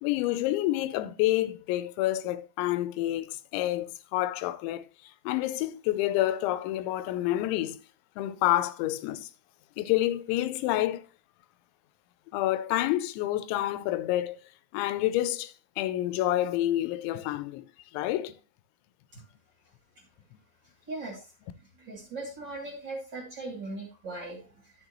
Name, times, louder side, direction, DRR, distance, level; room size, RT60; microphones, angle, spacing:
voice 1, 0.0-4.9 5.3-7.8 8.2-9.3 9.8-11.1 12.3-14.4 14.7-17.7 17.9-18.4, left 14 dB, 85° left, 2.9 m, -28 dB
voice 2, 20.9-21.2 21.8-24.7, right 2 dB, 30° right, 2.7 m, -39 dB
12.0 x 6.6 x 3.0 m
omnidirectional pair, 5.2 m